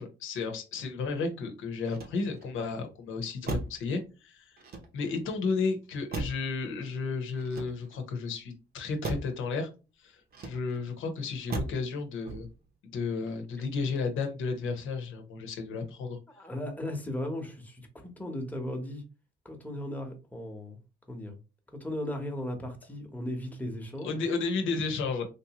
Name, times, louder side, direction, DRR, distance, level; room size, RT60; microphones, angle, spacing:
voice 1, 0.0-4.5 4.9-9.7 10.0-12.5 12.9-16.2 24.0-25.3, left 4 dB, 80° left, 0.9 m, -33 dB
Motor vehicle (road), 1.8-2.6 3.4-3.9 4.6-5.3 6.1-6.6 7.4-8.1 9.0-9.4 10.3-10.9 11.5-11.9 12.2-12.7, right 3 dB, 50° right, 0.9 m, -37 dB
voice 2, 16.3-19.0 19.4-20.8 21.1-21.4 21.7-24.2, left 1 dB, 10° left, 1.0 m, -36 dB
3.4 x 2.7 x 2.9 m
cardioid pair, 90°, 20 cm